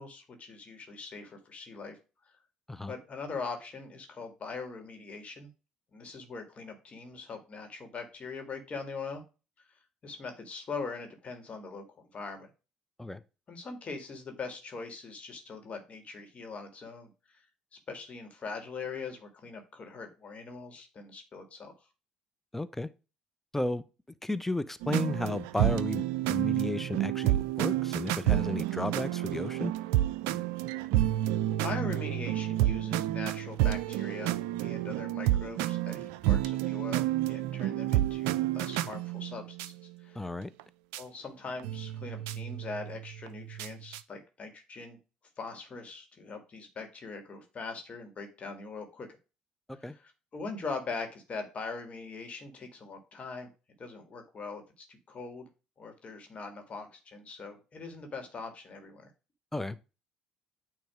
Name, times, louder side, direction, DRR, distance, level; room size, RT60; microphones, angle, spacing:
voice 1, 0.0-2.0 2.9-5.5 5.9-9.2 10.0-11.8 12.1-12.5 13.5-17.4 17.9-21.7 31.1-39.6 40.0-40.3 41.0-45.0 45.4-49.1 49.8-53.5 53.8-55.5 55.8-59.1, left 4 dB, 40° left, 2.0 m, -41 dB
voice 2, 22.5-22.9 23.5-23.8 24.2-29.7 40.1-40.5 49.7-49.9 59.5-59.8, left 2 dB, 10° left, 0.7 m, -33 dB
sound 1, 24.8-39.7 40.6-40.7 40.9-41.0 41.6-44.0, right 14 dB, 75° right, 0.4 m, -30 dB
9.1 x 3.1 x 4.9 m
hypercardioid pair, 60°, 3 cm